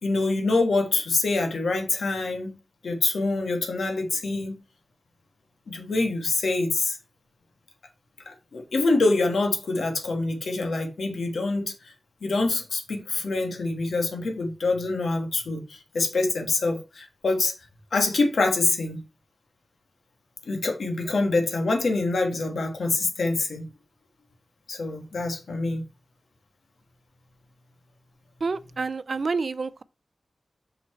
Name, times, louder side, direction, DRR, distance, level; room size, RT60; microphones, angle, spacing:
voice 1, 0.0-2.5 2.8-4.6 5.7-7.0 8.2-11.7 12.2-17.5 17.9-19.0 20.4-23.7 24.7-25.8, left 3 dB, 85° left, 1.4 m, -25 dB
voice 2, 28.4-29.8, right 4 dB, 60° right, 0.3 m, -28 dB
5.7 x 4.5 x 4.3 m
cardioid pair, 65°, 0 cm